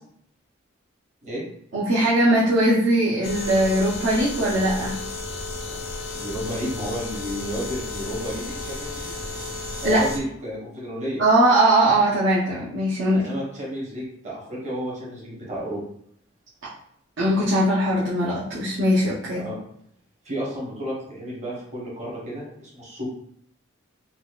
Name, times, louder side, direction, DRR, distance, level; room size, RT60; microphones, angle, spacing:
voice 1, 1.7-5.0 9.8-10.1 11.2-13.3 17.2-19.4, right 1 dB, 65° right, -8 dB, 0.7 m, -20 dB
sound 1, 3.2-10.2, left 3 dB, 55° left, 0.5 m, -33 dB
voice 2, 6.1-9.1 9.8-11.2 13.1-15.8 19.3-19.6 20.2-23.0, equal, 35° right, -5 dB, 1.0 m, -32 dB
3.9 x 2.2 x 2.3 m, 0.68 s
head